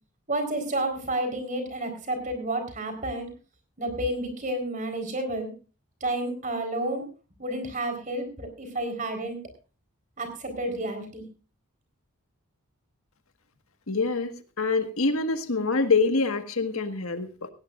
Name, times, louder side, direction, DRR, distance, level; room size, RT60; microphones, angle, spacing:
voice 1, 0.3-3.3 3.8-5.5 6.0-7.1 7.4-9.4 10.2-11.2, right 1 dB, 35° right, 7 dB, 4.1 m, -30 dB
voice 2, 13.9-14.3 14.6-17.5, left 4 dB, 70° left, 8 dB, 1.6 m, -25 dB
18.0 x 17.5 x 2.5 m, 0.33 s
head